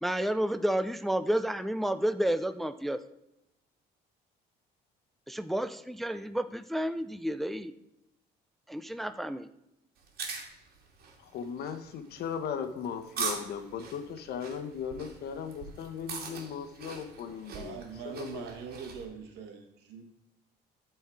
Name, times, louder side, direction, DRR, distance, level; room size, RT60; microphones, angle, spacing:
voice 1, 0.0-3.0 5.3-7.7 8.7-9.5, right 1 dB, ahead, 11 dB, 0.4 m, -31 dB
sound 1, 10.0-19.0, right 5 dB, 65° right, 2.4 m, -41 dB
voice 2, 11.2-17.8 18.0-18.5, left 7 dB, 70° left, 9 dB, 1.1 m, -37 dB
voice 3, 17.2-20.0, right 6 dB, 85° right, 3 dB, 1.9 m, -43 dB
12.5 x 4.6 x 4.8 m, 0.86 s
cardioid pair, 110°, 17 cm